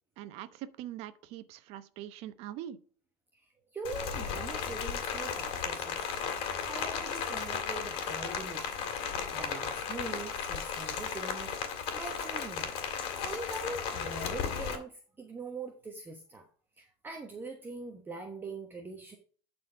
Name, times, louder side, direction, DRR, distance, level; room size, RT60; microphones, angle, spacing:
voice 1, 0.2-2.8, right 12 dB, 55° right, 12 dB, 0.9 m, -43 dB
voice 2, 3.3-6.0 6.6-8.9 9.3-11.5 11.9-12.8 13.2-16.5 16.8-19.2, right 3 dB, 15° right, 3 dB, 1.1 m, -42 dB
Rain, 3.8-14.8, left 7 dB, 50° left, 2.3 m, -35 dB
11.5 x 4.3 x 4.5 m, 0.43 s
supercardioid pair, 135°, 13 cm